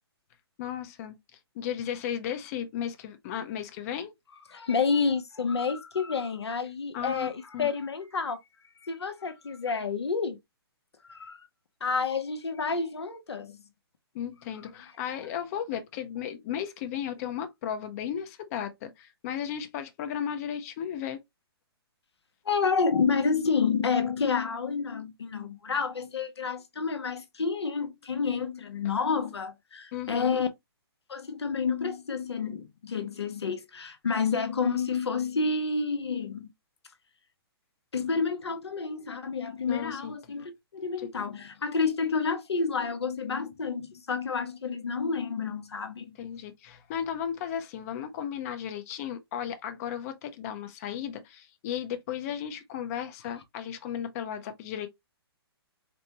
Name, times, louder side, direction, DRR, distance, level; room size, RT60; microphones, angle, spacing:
voice 1, 0.6-4.1 6.9-7.3 7.5-7.7 14.1-21.2 28.8-28.9 29.9-30.4 39.7-40.1 41.0-41.1 46.2-54.9, left 9 dB, 35° left, 0.6 m, -35 dB
voice 2, 4.5-8.4 8.8-10.4 11.1-11.4 11.8-13.6 22.4-30.5 31.1-36.5 37.9-46.2, left 5 dB, 85° left, 0.9 m, -29 dB
4.2 x 2.1 x 2.8 m
hypercardioid pair, 135°, 14 cm